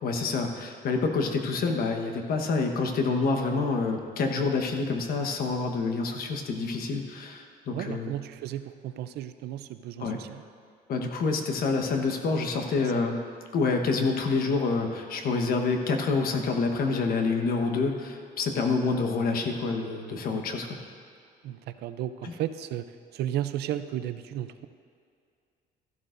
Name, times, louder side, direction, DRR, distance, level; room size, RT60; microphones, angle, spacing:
voice 1, 0.0-8.1 10.0-10.2 10.9-13.2 13.5-20.8 22.2-22.3, left 4 dB, 60° left, 4 dB, 1.2 m, -27 dB
voice 2, 7.7-10.4 12.8-13.1 21.4-22.9 23.1-24.7, right 12 dB, 75° right, 11 dB, 0.5 m, -34 dB
14.0 x 12.0 x 2.6 m, 2.4 s
cardioid pair, 110°, 17 cm